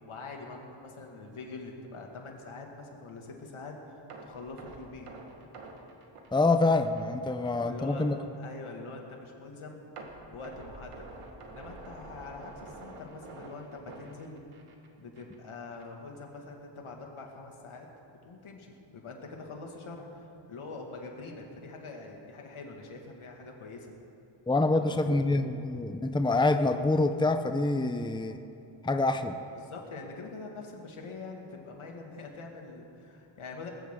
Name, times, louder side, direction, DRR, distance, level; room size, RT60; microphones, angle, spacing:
voice 1, 0.0-5.1 7.6-9.9 10.3-11.1 11.5-14.4 15.0-17.9 18.2-23.9 24.7-25.3 29.5-33.7, left 3 dB, 75° left, 1 dB, 2.4 m, -44 dB
sound 1, 4.1-7.1 7.4-7.6 8.1-8.2 10.0-14.9 15.2-15.4 15.8-15.9, right 2 dB, 90° right, 1.8 m, -47 dB
voice 2, 6.3-8.2 24.5-28.4 28.8-29.4, left 2 dB, 10° left, 8 dB, 0.8 m, -26 dB
20.0 x 15.0 x 3.9 m, 2.8 s
cardioid pair, 60°, 50 cm